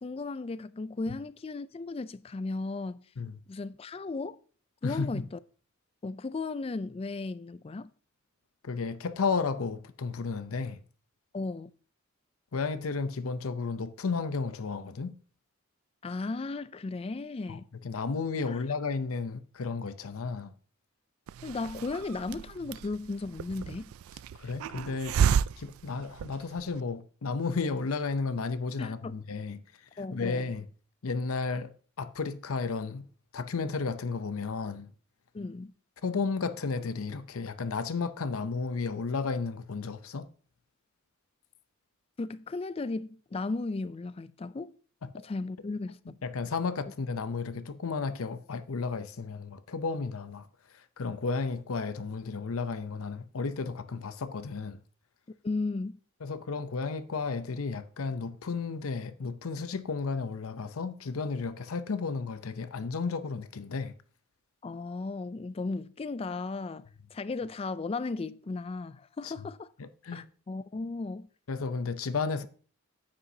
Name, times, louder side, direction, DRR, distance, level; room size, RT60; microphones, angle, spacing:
voice 1, 0.0-3.0 3.5-4.4 4.8-5.4 6.0-7.9 11.3-11.7 16.0-17.6 18.5-18.6 21.4-23.9 28.8-29.2 30.0-30.5 35.3-35.7 42.2-44.8 45.2-46.0 55.4-56.0 64.6-69.7 70.1-71.3, left 3 dB, 30° left, 0.3 m, -35 dB
voice 2, 4.8-5.3 8.6-10.8 12.5-15.1 17.5-20.5 24.3-25.2 25.6-29.6 30.0-30.7 31.0-33.0 33.3-34.9 36.0-40.3 45.0-45.1 46.2-54.8 56.2-63.9 69.2-69.3 69.8-70.3 71.5-72.5, left 4 dB, 85° left, 0.6 m, -33 dB
Hiss, 21.3-26.8, right 8 dB, 85° right, 0.3 m, -32 dB
9.6 x 8.7 x 2.7 m
head